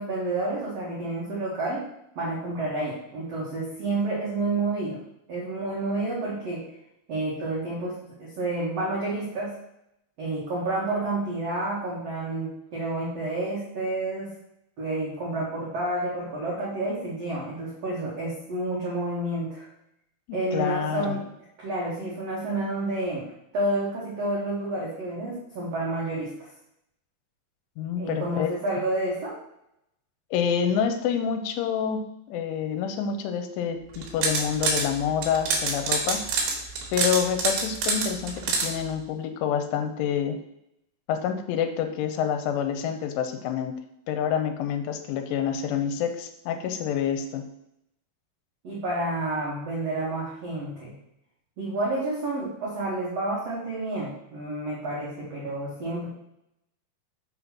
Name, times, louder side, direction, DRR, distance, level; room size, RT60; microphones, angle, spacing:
voice 1, 0.0-1.8 2.1-5.0 5.3-6.6 7.1-9.5 10.2-14.3 14.8-19.7 20.3-21.2 21.6-23.3 23.5-26.3 28.0-29.3 48.6-51.0 51.6-56.1, right 2 dB, 85° right, -6 dB, 1.4 m, -29 dB
voice 2, 20.3-21.2 27.8-28.5 30.3-36.2 36.9-40.4 41.1-43.8 44.1-47.4, left 8 dB, 80° left, 7 dB, 3.0 m, -27 dB
sound 1, 33.9-34.9 35.2-38.7, right 4 dB, 65° right, 2.7 m, -25 dB
6.7 x 4.2 x 5.9 m, 0.82 s
omnidirectional pair, 5.6 m